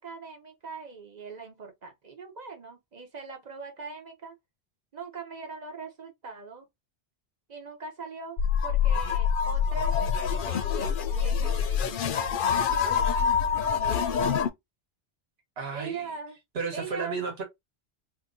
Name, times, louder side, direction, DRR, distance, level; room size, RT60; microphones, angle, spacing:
voice 1, 0.0-4.3 4.9-6.7 7.5-14.5 15.7-16.4 16.7-17.2, right 5 dB, 45° right, 0.9 m, -42 dB
sound 1, 8.4-14.5, left 7 dB, 60° left, 0.6 m, -26 dB
voice 2, 15.6-16.1 16.5-17.4, right 4 dB, 70° right, 1.3 m, -33 dB
2.8 x 2.6 x 3.6 m
omnidirectional pair, 1.1 m